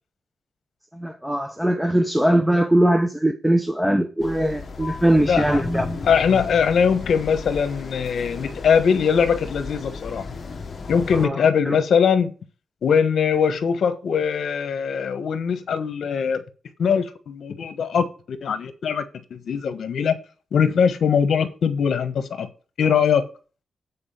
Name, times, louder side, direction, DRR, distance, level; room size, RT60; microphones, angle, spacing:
voice 1, 0.9-5.9 11.1-11.8, right 1 dB, 5° right, 0.8 m, -21 dB
sound 1, 4.2-11.3, left 3 dB, 40° left, 1.1 m, -34 dB
voice 2, 5.3-5.6 6.1-10.3 10.9-12.3 12.8-16.4 16.8-19.0 19.3-20.2 20.5-22.5 22.8-23.3, left 6 dB, 70° left, 1.2 m, -21 dB
8.5 x 4.7 x 7.0 m
wide cardioid pair, 135°, 0 cm